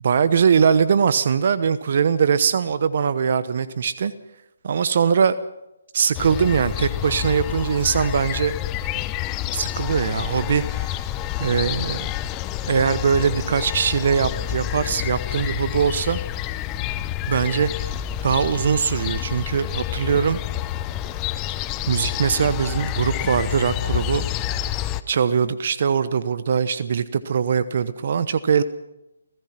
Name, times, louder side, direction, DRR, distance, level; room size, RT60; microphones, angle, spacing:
voice 1, 0.0-4.1 4.6-5.3 5.9-8.5 9.5-11.1 11.4-12.1 12.7-16.2 17.3-17.9 18.2-20.4 21.9-24.2 24.6-24.8 25.1-28.6, right 6 dB, 50° right, 14 dB, 1.0 m, -21 dB
sound 1, 6.1-25.0, left 12 dB, 20° left, 0.8 m, -28 dB
29.0 x 16.0 x 5.9 m, 0.90 s
figure-of-eight pair, 145°, 0 cm